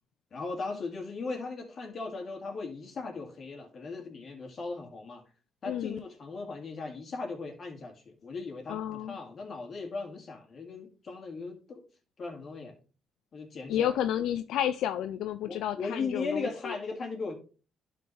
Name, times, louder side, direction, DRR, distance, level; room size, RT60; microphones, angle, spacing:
voice 1, 0.3-5.2 5.6-11.8 12.2-12.8 13.3-14.0 15.5-17.3, left 4 dB, 50° left, 2.3 m, -38 dB
voice 2, 5.6-6.0 8.7-9.2 13.7-16.8, left 10 dB, 85° left, 0.4 m, -31 dB
11.5 x 4.6 x 3.3 m
cardioid pair, 90°, 0 cm